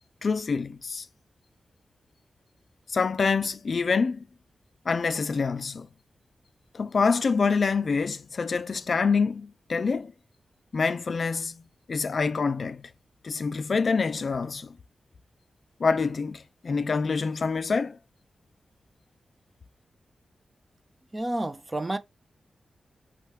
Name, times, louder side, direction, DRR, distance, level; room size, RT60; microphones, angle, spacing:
voice 1, 0.2-1.1 2.9-4.3 4.9-5.9 6.7-10.1 10.7-11.6 11.9-12.9 13.2-14.8 15.8-18.0, left 5 dB, 50° left, 0.4 m, -26 dB
voice 2, 21.1-22.0, right 1 dB, 20° right, 0.6 m, -30 dB
5.4 x 3.0 x 3.2 m
wide cardioid pair, 115°, 0 cm